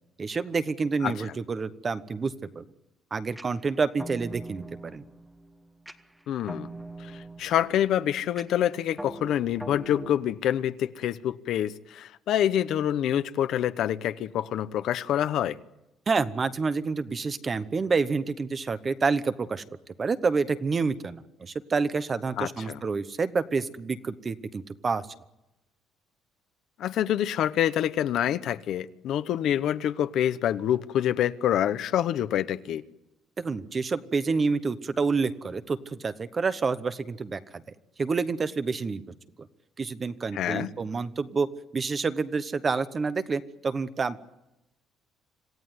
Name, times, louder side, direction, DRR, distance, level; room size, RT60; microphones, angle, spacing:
voice 1, 0.2-2.6 3.1-5.0 16.1-19.6 20.0-25.0 33.4-37.6 38.0-39.0 39.8-41.5 41.7-44.2, right 4 dB, 25° right, 13 dB, 0.9 m, -28 dB
sound 1, 3.4-10.1, right 1 dB, 5° right, 1.1 m, -43 dB
voice 2, 6.3-6.7 7.0-15.6 22.4-22.8 26.8-32.8 40.3-40.7, left 11 dB, 60° left, 13 dB, 1.0 m, -26 dB
27.0 x 16.5 x 9.6 m, 0.93 s
cardioid pair, 170°, 0 cm